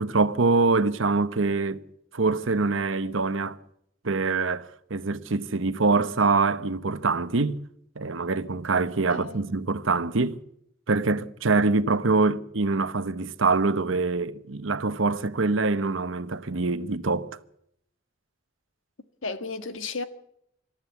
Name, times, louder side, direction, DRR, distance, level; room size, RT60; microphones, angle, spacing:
voice 1, 0.0-1.8 2.1-3.6 4.0-7.6 8.0-10.4 10.9-17.3, right 3 dB, 85° right, 1.0 m, -24 dB
voice 2, 9.1-9.4 19.2-20.0, left 4 dB, 85° left, 1.6 m, -33 dB
26.0 x 13.5 x 8.2 m
head